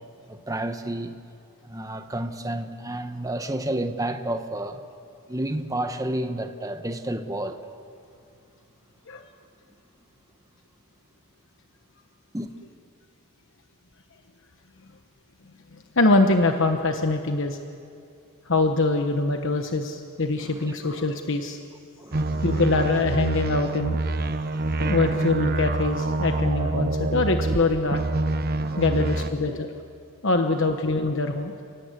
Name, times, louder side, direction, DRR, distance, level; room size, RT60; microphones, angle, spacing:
voice 1, 0.3-1.1 1.6-4.8 5.3-7.6 12.3-12.5 20.4-20.7 22.0-22.6 24.5-25.0 26.6-26.7 28.6-28.9, right 1 dB, 15° right, 7 dB, 1.1 m, -31 dB
voice 2, 16.0-17.6 18.5-21.6 22.4-24.0 24.8-28.0 28.8-29.7 30.2-31.5, left 2 dB, 60° left, 5 dB, 1.2 m, -23 dB
sound 1, 22.1-27.6 27.9-29.3, right 2 dB, 45° right, 1.0 m, -26 dB
29.5 x 19.0 x 8.3 m, 2.4 s
head